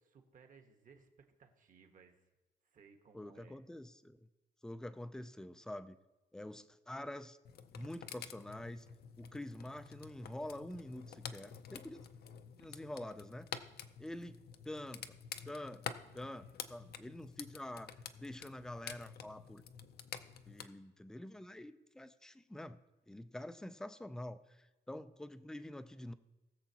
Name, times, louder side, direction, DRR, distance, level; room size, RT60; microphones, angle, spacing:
voice 1, 0.1-2.2 2.6-3.6, right 5 dB, 45° right, 5 dB, 1.2 m, -62 dB
voice 2, 3.1-4.3 4.6-6.0 6.3-7.4 7.7-8.9 9.2-12.0 12.5-13.5 14.0-14.4 14.6-15.1 15.5-15.8 16.1-19.6 20.5-22.8 23.1-26.1, left 1 dB, 5° left, 11 dB, 0.3 m, -46 dB
sound 1, 7.4-20.7, left 8 dB, 55° left, 0.6 m, -49 dB
20.5 x 7.0 x 2.9 m, 1.1 s
cardioid pair, 165°, 19 cm